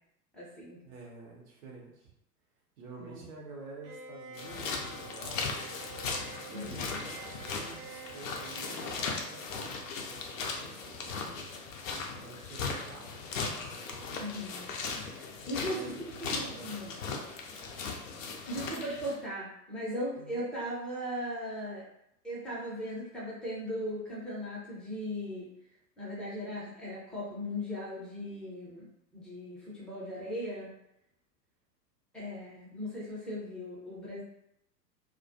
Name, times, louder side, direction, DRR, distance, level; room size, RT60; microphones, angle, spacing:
voice 1, 0.3-0.8 3.0-3.3 6.5-7.0 14.2-14.6 14.9-15.8 16.3-17.0 18.5-21.8 22.2-25.5 26.0-28.9 29.1-30.7 32.1-34.2, equal, ahead, -8 dB, 0.6 m, -38 dB
voice 2, 0.8-2.1 2.8-6.0 6.4-11.5 12.1-14.2 15.3-16.7 20.2-20.4, right 3 dB, 55° right, -2 dB, 0.8 m, -49 dB
Bowed string instrument, 3.8-9.9, right 6 dB, 90° right, 0.6 m, -49 dB
sound 1, 4.3-19.2, left 4 dB, 50° left, 0.5 m, -38 dB
2.3 x 2.3 x 2.6 m, 0.80 s
figure-of-eight pair, 90°, 50 cm